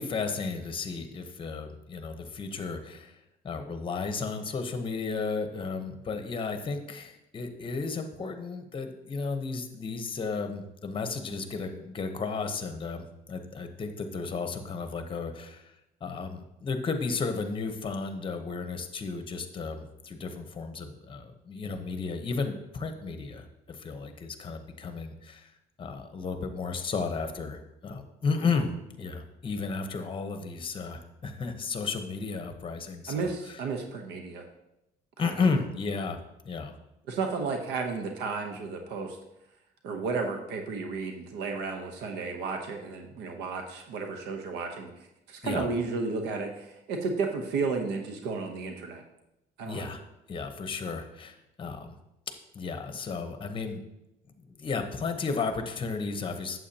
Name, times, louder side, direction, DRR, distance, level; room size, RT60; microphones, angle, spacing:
voice 1, 0.0-3.2 3.4-15.7 16.0-25.5 25.8-28.7 29.0-33.6 35.2-36.2 36.4-36.7 45.4-45.7 49.7-50.0 50.3-51.9 52.5-53.8 54.4-56.6, left 4 dB, 30° left, 7 dB, 0.9 m, -33 dB
voice 2, 33.1-34.4 35.2-35.3 37.1-39.2 39.8-49.0 49.6-49.9, right 4 dB, 90° right, 4 dB, 0.9 m, -33 dB
8.4 x 7.5 x 2.8 m, 0.87 s
cardioid pair, 110°, 17 cm